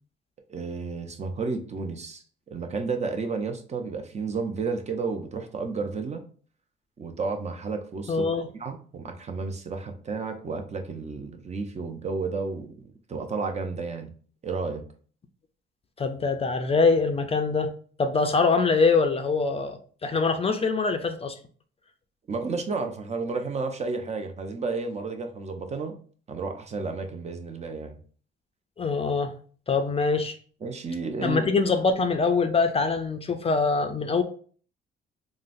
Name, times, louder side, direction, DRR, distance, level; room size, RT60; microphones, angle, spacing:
voice 1, 0.5-6.2 7.0-8.3 8.6-14.1 14.4-14.8 22.3-25.9 26.3-28.0 30.6-31.5, right 4 dB, 35° right, 0.5 m, -32 dB
voice 2, 8.1-8.4 16.0-17.7 18.0-21.3 28.8-29.3 29.7-30.3 31.2-34.2, left 4 dB, 30° left, 0.4 m, -24 dB
3.7 x 2.0 x 2.5 m
cardioid pair, 90°, 20 cm